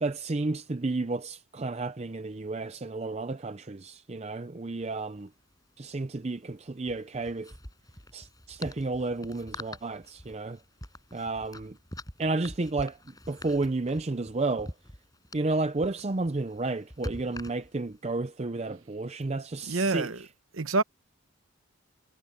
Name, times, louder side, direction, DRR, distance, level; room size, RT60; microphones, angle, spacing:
voice 1, 0.0-5.3 5.8-7.5 8.1-10.6 11.1-11.8 12.2-13.0 13.3-14.7 15.3-20.1, right 3 dB, 30° right, 0.5 m, -32 dB
sound 1, 4.8-4.9 5.1-5.3 6.8-18.0, left 1 dB, 20° left, 6.2 m, -45 dB
voice 2, 19.7-20.3 20.5-20.8, right 3 dB, 70° right, 1.0 m, -27 dB
head